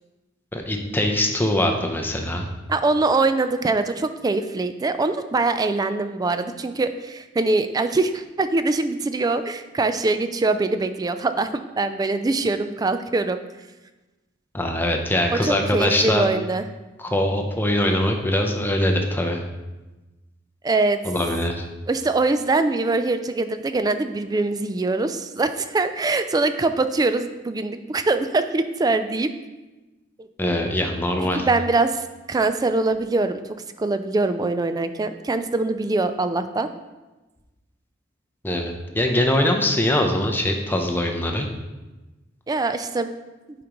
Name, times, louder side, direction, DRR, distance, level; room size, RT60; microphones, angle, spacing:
voice 1, 0.5-2.5 14.5-16.3 17.0-19.4 21.0-21.7 30.4-31.5 38.4-41.5, left 1 dB, 10° left, 3 dB, 0.7 m, -22 dB
voice 2, 2.7-13.4 15.3-16.7 20.6-21.0 21.9-29.3 30.2-30.3 31.4-33.4 33.8-36.7 42.5-43.1, right 3 dB, 20° right, 10 dB, 0.3 m, -23 dB
8.5 x 5.1 x 3.0 m, 1.1 s
head